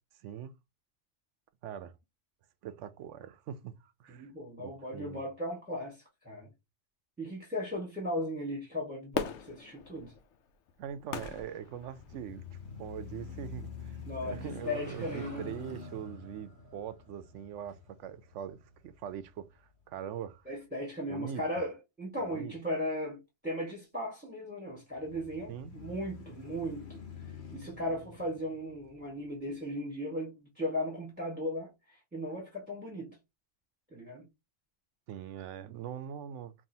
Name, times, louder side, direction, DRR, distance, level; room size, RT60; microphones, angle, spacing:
voice 1, 0.2-0.5 1.6-1.9 2.6-4.3 4.6-5.2 10.8-20.4 21.1-21.4 22.3-22.5 25.5-25.7 35.1-36.5, right 9 dB, 85° right, 0.9 m, -42 dB
voice 2, 4.1-6.5 7.2-10.1 14.1-15.4 20.4-27.0 27.5-33.1 33.9-34.3, left 1 dB, 10° right, 1.3 m, -37 dB
Fireworks, 9.1-12.5 13.0-13.1, left 6 dB, 80° left, 1.0 m, -39 dB
sound 1, 11.7-19.8 20.3-20.4 24.9-29.4, left 5 dB, 65° left, 1.4 m, -47 dB
sound 2, 14.4-18.6, right 2 dB, 45° left, 2.7 m, -55 dB
5.4 x 2.5 x 2.7 m
omnidirectional pair, 1.2 m